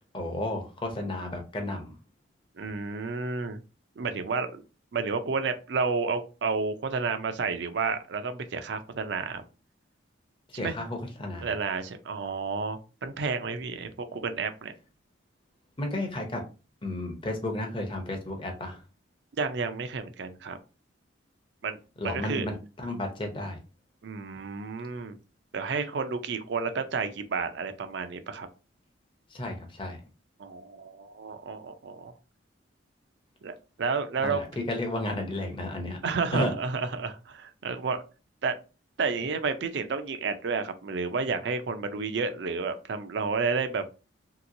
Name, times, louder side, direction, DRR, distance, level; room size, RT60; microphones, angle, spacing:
voice 1, 0.1-2.0 10.5-11.5 15.8-16.4 16.8-18.8 22.0-23.6 29.3-30.0 34.2-36.0 36.3-36.5, left 1 dB, 25° left, 3 dB, 0.6 m, -32 dB
voice 2, 2.6-3.6 4.0-4.6 4.9-9.4 10.5-10.7 11.4-14.7 19.4-20.6 21.6-21.8 22.0-22.5 24.0-25.2 25.5-28.5 30.4-32.1 33.4-34.4 36.0-38.0 38.4-38.6 39.0-43.8, right 4 dB, 60° right, 9 dB, 0.4 m, -31 dB
2.9 x 2.9 x 2.5 m, 0.32 s
head